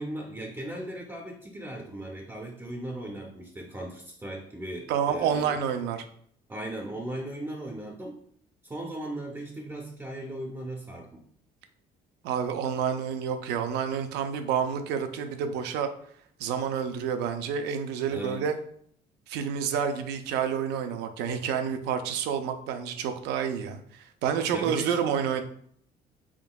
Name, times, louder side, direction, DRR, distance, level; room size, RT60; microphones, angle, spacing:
voice 1, 0.0-5.6 6.5-8.2 8.6-11.2 18.1-18.4 24.5-25.0, right 1 dB, 15° right, 1 dB, 0.5 m, -37 dB
voice 2, 4.9-6.0 12.2-15.9 16.4-18.6 19.3-25.4, right 7 dB, 90° right, 7 dB, 0.5 m, -29 dB
3.7 x 3.6 x 2.3 m, 0.63 s
cardioid pair, 110°, 17 cm